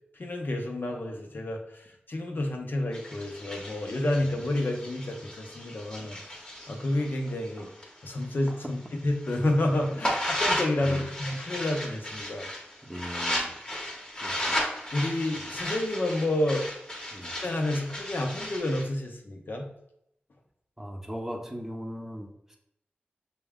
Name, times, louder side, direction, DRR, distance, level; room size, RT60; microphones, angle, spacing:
voice 1, 0.2-6.4 6.7-7.7 8.0-12.5 14.9-16.7 17.4-19.7, left 1 dB, 60° left, 2 dB, 0.7 m, -29 dB
sound 1, 2.9-8.6 9.0-18.8, left 1 dB, 20° left, 1.0 m, -35 dB
voice 2, 12.8-13.5 14.2-14.6 17.1-17.3 20.8-22.6, equal, 10° right, 2 dB, 0.7 m, -39 dB
5.9 x 2.3 x 3.5 m, 0.77 s
cardioid pair, 55°, 4 cm